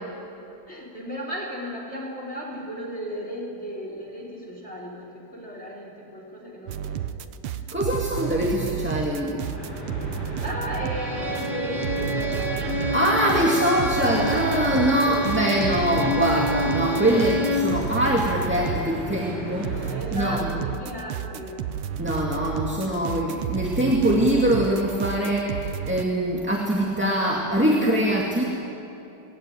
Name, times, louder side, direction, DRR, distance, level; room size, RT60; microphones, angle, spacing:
voice 1, 0.7-7.1 7.6-7.7 10.4-13.0 14.9-15.5 19.8-21.7, equal, 30° left, -3 dB, 4.4 m, -35 dB
sound 1, 6.7-18.9 19.2-26.0, right 10 dB, 80° right, 1.8 m, -32 dB
voice 2, 7.7-9.5 12.9-20.5 22.0-28.4, equal, 5° right, -3 dB, 2.1 m, -23 dB
sound 2, 9.3-20.0, equal, 10° left, 7.9 m, -35 dB
Bowed string instrument, 10.9-17.8, equal, 35° right, 2.3 m, -28 dB
24.0 x 20.0 x 9.4 m, 2.9 s
omnidirectional pair, 2.4 m